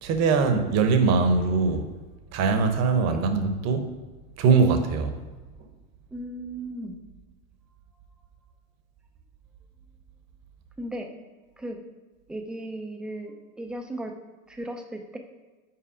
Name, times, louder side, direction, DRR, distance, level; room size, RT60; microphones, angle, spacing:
voice 1, 0.0-1.8 2.3-3.9 4.4-5.1, right 4 dB, 40° right, 7 dB, 1.0 m, -22 dB
voice 2, 6.1-7.0 10.8-11.1 11.6-11.8 12.3-14.1 14.5-15.2, right 1 dB, ahead, 4 dB, 0.4 m, -36 dB
5.8 x 4.7 x 4.9 m, 1.3 s
hypercardioid pair, 110°, 41 cm